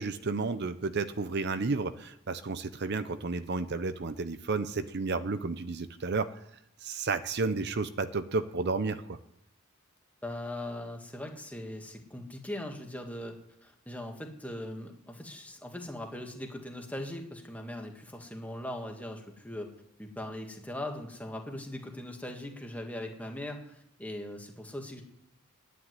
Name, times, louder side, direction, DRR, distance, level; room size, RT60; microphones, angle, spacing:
voice 1, 0.0-6.3 6.8-9.2, right 3 dB, 50° right, 11 dB, 0.7 m, -32 dB
voice 2, 10.2-19.7 20.0-25.0, left 1 dB, 5° left, 3 dB, 1.7 m, -40 dB
10.0 x 9.4 x 9.7 m, 0.75 s
head